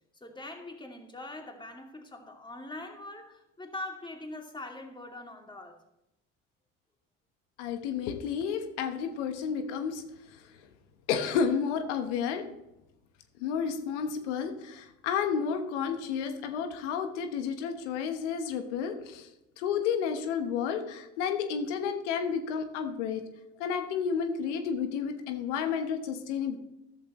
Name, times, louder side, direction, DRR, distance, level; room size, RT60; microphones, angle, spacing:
voice 1, 0.1-5.8 14.0-14.2, left 2 dB, 15° left, 2 dB, 2.5 m, -43 dB
voice 2, 7.6-10.0 11.1-12.4 13.4-19.3 19.6-23.2 23.6-26.6, left 7 dB, 85° left, 7 dB, 1.2 m, -31 dB
14.0 x 11.5 x 3.1 m, 0.89 s
hypercardioid pair, 75°, 35 cm